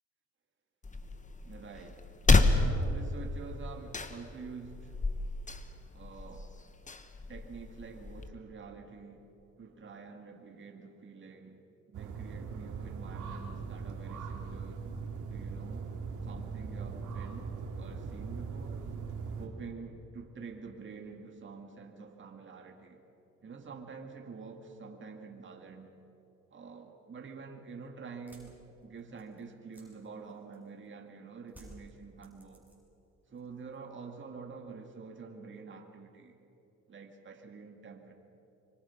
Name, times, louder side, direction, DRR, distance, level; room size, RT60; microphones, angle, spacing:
sound 1, 0.8-8.3, left 3 dB, 25° left, 1.5 m, -31 dB
voice 1, 1.4-2.1 2.5-5.0 5.9-6.5 7.3-9.3 9.6-11.6 11.9-14.9 15.3-15.9 16.2-18.9 19.4-23.0 23.4-25.9 26.5-32.7 33.3-36.4 36.9-38.1, right 5 dB, 40° right, 3 dB, 2.3 m, -47 dB
sound 2, 11.9-19.5, right 5 dB, 80° right, 2.8 m, -40 dB
sound 3, 28.1-30.9 31.5-33.0 33.3-33.9, equal, 5° right, 7.7 m, -57 dB
25.0 x 24.5 x 5.9 m, 3.0 s
cardioid pair, 90°, 30 cm